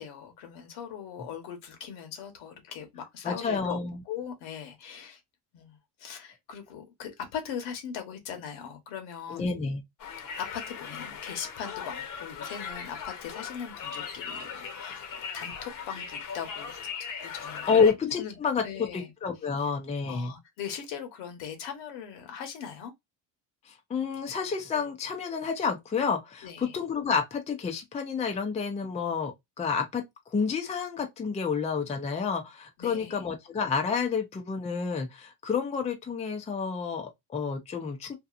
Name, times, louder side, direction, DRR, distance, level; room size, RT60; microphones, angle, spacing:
voice 1, 0.0-3.8 4.0-5.2 5.5-9.5 10.3-15.0 15.3-16.7 17.0-17.6 18.2-18.4 18.6-19.1 20.1-22.9 26.4-26.8 32.8-33.2, left 8 dB, 75° left, 1.2 m, -40 dB
voice 2, 3.2-4.0 9.3-9.8 17.7-18.6 18.9-20.3 23.7-30.0 30.3-38.1, left 5 dB, 15° left, 0.5 m, -29 dB
Conversation, 10.0-17.9, left 6 dB, 45° left, 0.9 m, -39 dB
2.8 x 2.4 x 2.4 m
cardioid pair, 120°, 46 cm